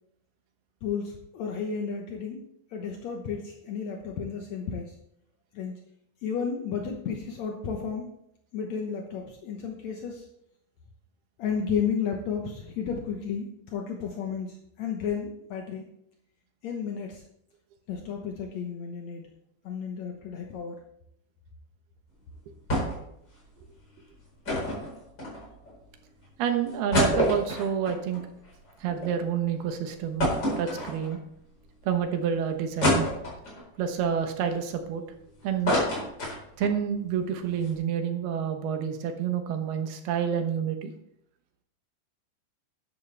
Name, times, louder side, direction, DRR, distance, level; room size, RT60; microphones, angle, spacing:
voice 1, 0.8-2.4 2.7-4.9 5.5-5.8 6.2-8.1 8.5-10.3 11.4-15.8 16.6-17.2 17.9-19.3 19.6-20.8, left 6 dB, 75° left, 2 dB, 1.6 m, -32 dB
sound 1, 22.7-23.1 23.4-23.5 24.4-25.7 26.2-26.3 26.7-29.1 29.5-29.6 30.2-31.3 31.8-31.9 32.8-33.6 34.2-35.2 35.4-36.8 37.1-37.2 37.5-37.7, left 1 dB, 25° left, 5.0 m, -27 dB
voice 2, 26.4-28.2 28.8-30.3 30.6-31.2 31.9-33.0 33.8-35.0 35.4-35.8 36.6-40.9, right 8 dB, 75° right, 6 dB, 3.0 m, -28 dB
12.5 x 11.0 x 3.4 m, 0.74 s
omnidirectional pair, 4.7 m